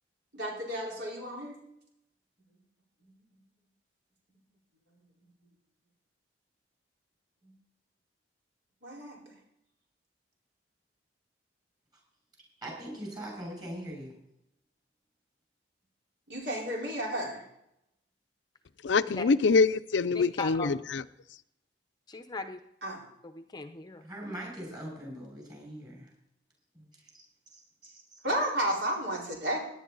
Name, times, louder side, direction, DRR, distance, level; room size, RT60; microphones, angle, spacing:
voice 1, 0.3-1.5 3.0-3.1 7.4-7.5 8.8-9.4 16.3-17.4 22.8-23.0 27.8-27.9 28.2-29.6, right 1 dB, 75° right, -2 dB, 4.3 m, -33 dB
voice 2, 12.6-14.1 24.0-26.1 26.7-26.8 27.1-27.2 27.5-27.6 28.1-28.2, right 1 dB, 25° right, 0 dB, 6.2 m, -41 dB
voice 3, 18.8-21.0, left 4 dB, 80° left, 13 dB, 0.5 m, -25 dB
voice 4, 20.1-20.8 22.1-22.6 23.2-24.1, left 3 dB, 20° left, 7 dB, 0.6 m, -38 dB
17.5 x 10.0 x 4.0 m, 0.78 s
head